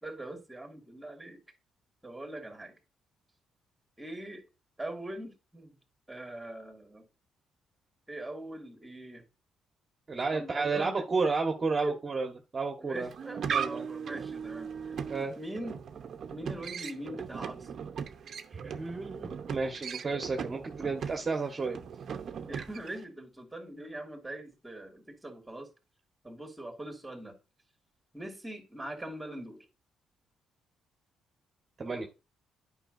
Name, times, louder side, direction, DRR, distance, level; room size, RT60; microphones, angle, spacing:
voice 1, 0.0-1.4 2.0-2.8 4.0-4.4 4.8-5.8 6.1-7.0 8.1-9.2 10.3-11.1 11.8-12.0 12.8-14.9 15.4-15.8 16.3-17.9 22.5-25.7 26.2-27.4 28.1-29.7, right 1 dB, 10° right, 2.4 m, -41 dB
voice 2, 10.1-12.3 12.5-13.1 13.5-13.9 15.1-15.3 18.5-21.8 31.8-32.1, right 4 dB, 35° right, 1.2 m, -32 dB
sound 1, 13.0-23.0, right 7 dB, 60° right, 0.8 m, -38 dB
8.9 x 5.6 x 2.6 m
cardioid pair, 90°, 0 cm